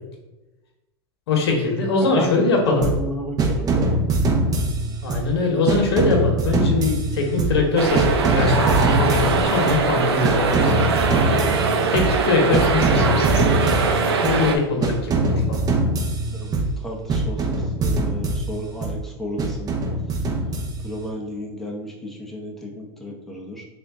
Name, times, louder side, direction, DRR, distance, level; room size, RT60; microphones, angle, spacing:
voice 1, 1.3-2.9 5.0-11.1 11.9-13.5 14.2-15.6, left 3 dB, 80° left, 1 dB, 1.0 m, -22 dB
voice 2, 2.0-3.9 15.1-15.2 16.3-19.7 20.8-23.7, equal, ahead, -1 dB, 0.7 m, -32 dB
sound 1, 2.8-3.1 3.4-5.3 5.7-7.7 8.0-9.9 10.2-12.2 12.5-14.5 14.8-16.8 17.1-19.0 19.4-21.0, right 2 dB, 30° right, 0.8 m, -23 dB
sound 2, 7.8-14.6, right 4 dB, 85° right, 0.5 m, -21 dB
3.5 x 2.5 x 3.5 m, 1.1 s
hypercardioid pair, 105°, 13 cm